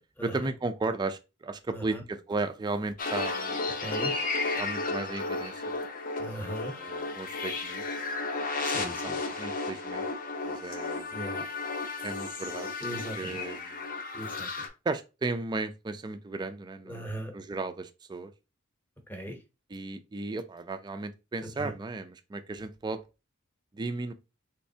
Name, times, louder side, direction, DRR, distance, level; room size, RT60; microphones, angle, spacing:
voice 1, 0.2-3.7 4.6-5.7 6.7-7.8 9.0-10.1 10.4-11.1 12.0-13.8 14.9-18.3 19.7-23.0 23.7-24.1, right 3 dB, 20° right, 0.3 m, -35 dB
voice 2, 1.7-2.0 3.8-4.1 6.2-6.7 8.6-9.2 11.1-11.4 12.8-13.4 14.1-14.5 16.9-17.3 19.1-19.3 21.6-21.7, right 1 dB, 10° left, 0.8 m, -38 dB
sound 1, 3.0-14.7, left 3 dB, 40° left, 0.6 m, -33 dB
3.6 x 3.1 x 2.7 m
head